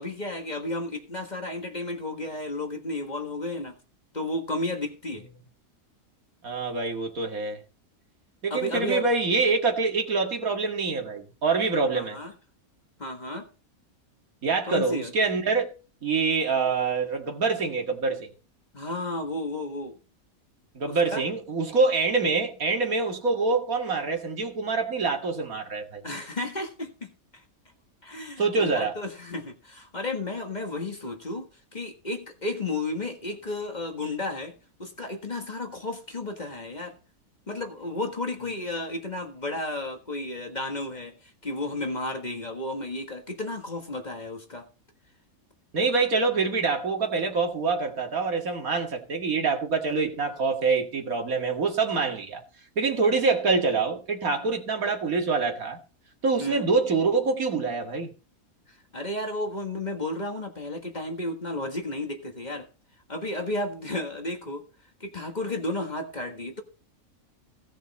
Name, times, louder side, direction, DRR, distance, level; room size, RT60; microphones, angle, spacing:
voice 1, 0.0-3.8 4.1-5.3 8.5-9.1 11.9-12.3 13.0-13.5 14.7-15.1 18.7-20.0 20.9-21.2 26.0-27.4 28.0-37.0 37.5-44.7 56.4-56.7 58.7-62.7 63.1-64.6 65.0-66.6, left 2 dB, 30° left, 1.6 m, -33 dB
voice 2, 6.4-7.6 8.4-12.2 14.4-15.7 16.0-18.3 20.8-26.0 28.4-28.9 45.7-52.4 52.8-55.8 56.2-58.1, right 4 dB, 75° right, 2.4 m, -25 dB
17.0 x 6.2 x 4.1 m
omnidirectional pair, 1.5 m